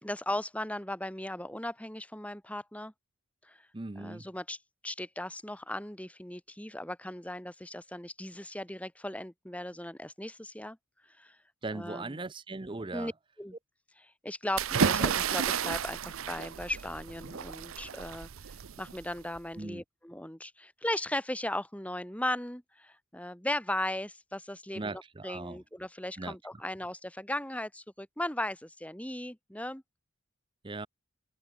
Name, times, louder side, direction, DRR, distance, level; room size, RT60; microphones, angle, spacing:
voice 1, 0.0-2.9 3.4-3.6 4.0-4.6 4.8-10.8 11.2-11.4 11.7-12.3 12.9-13.1 13.4-13.6 14.0-29.8, left 1 dB, 5° left, 2.4 m, -37 dB
voice 2, 3.7-4.2 11.6-13.1 19.6-19.8 24.7-25.6 26.2-26.4 30.6-30.9, right 3 dB, 25° right, 0.6 m, -38 dB
sound 1, 14.6-19.4, right 7 dB, 80° right, 0.6 m, -32 dB
head